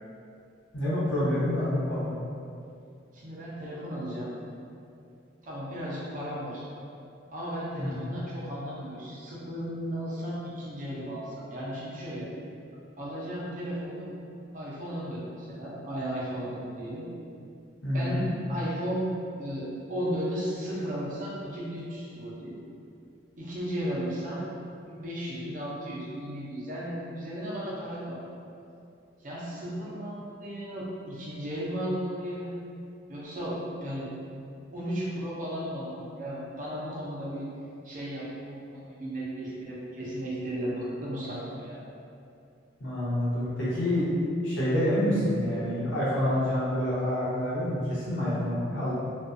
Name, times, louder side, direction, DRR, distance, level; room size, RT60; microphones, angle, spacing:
voice 1, 0.7-2.1 7.8-8.0 17.8-18.2 42.8-44.1 44.4-48.9, left 1 dB, 80° left, -10 dB, 1.0 m, -27 dB
voice 2, 3.1-4.3 5.4-6.7 7.3-12.3 13.0-14.1 14.5-17.1 17.9-18.2 18.5-19.1 19.4-22.5 23.4-24.4 24.9-28.2 29.2-32.6 33.1-34.1 34.7-37.5 37.8-41.8, equal, 40° right, -6 dB, 0.5 m, -35 dB
2.4 x 2.3 x 2.5 m, 2.5 s
head